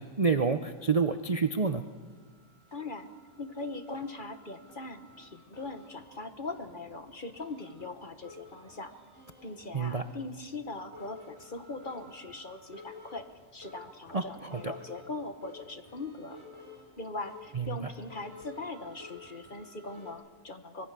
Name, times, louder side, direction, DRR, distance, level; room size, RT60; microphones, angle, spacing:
voice 1, 0.0-1.8 9.7-10.0 14.1-14.7 17.5-17.8, right 5 dB, 55° right, 9 dB, 0.4 m, -28 dB
sound 1, 1.0-20.1, left 3 dB, 15° left, 6.4 m, -53 dB
voice 2, 2.7-3.1 3.4-8.9 9.4-13.2 13.5-16.4 17.0-20.9, left 3 dB, 30° left, 8 dB, 1.3 m, -41 dB
25.0 x 22.0 x 6.8 m, 1.5 s
omnidirectional pair, 1.8 m